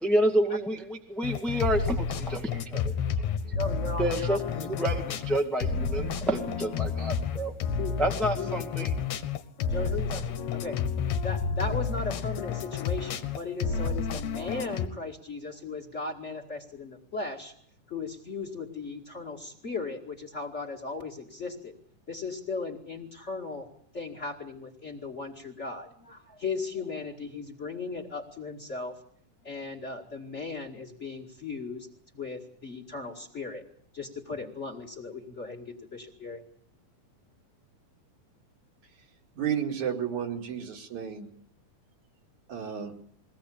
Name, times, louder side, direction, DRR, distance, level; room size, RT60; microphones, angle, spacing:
voice 1, 0.0-2.8 4.0-7.5 8.0-8.9, right 1 dB, ahead, 4 dB, 1.0 m, -29 dB
sound 1, 1.2-14.9, left 6 dB, 65° left, 2.4 m, -30 dB
voice 2, 3.5-4.7 7.7-8.0 8.3-8.6 9.7-10.8 11.2-17.5 17.9-21.7 22.1-23.7 23.9-29.0 29.4-31.9 32.1-33.6 33.9-36.4, left 3 dB, 25° left, 4 dB, 2.2 m, -37 dB
voice 3, 39.4-41.3 42.5-42.9, right 8 dB, 70° right, 3 dB, 3.6 m, -32 dB
22.0 x 17.5 x 8.5 m, 0.63 s
omnidirectional pair, 3.5 m